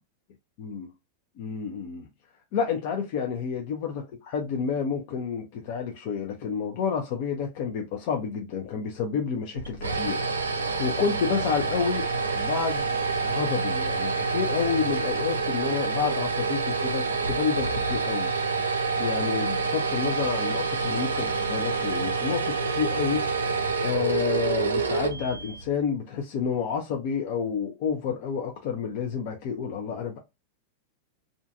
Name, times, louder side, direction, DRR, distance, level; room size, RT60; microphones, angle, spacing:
voice 1, 0.6-0.9 1.4-2.1 2.5-10.3 10.8-12.1 12.3-12.9 13.2-18.3 19.0-23.2 23.8-30.2, left 6 dB, 55° left, 0.5 m, -29 dB
sound 1, 9.5-25.8, right 4 dB, 85° right, 0.4 m, -27 dB
2.5 x 2.3 x 2.5 m
hypercardioid pair, 100°, 0 cm